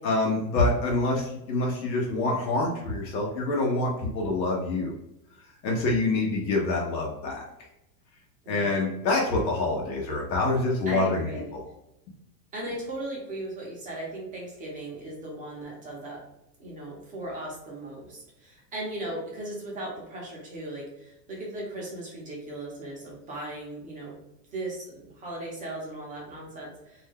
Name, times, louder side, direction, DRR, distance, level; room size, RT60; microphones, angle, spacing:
voice 1, 0.0-4.9 5.6-7.4 8.5-11.2 11.5-11.6, left 2 dB, 85° left, -2 dB, 1.0 m, -26 dB
voice 2, 8.4-8.8 10.9-11.5 12.5-16.2 16.6-24.1 24.5-27.1, right 1 dB, 15° right, -4 dB, 0.7 m, -37 dB
2.6 x 2.2 x 3.5 m, 0.86 s
supercardioid pair, 145°, 50 cm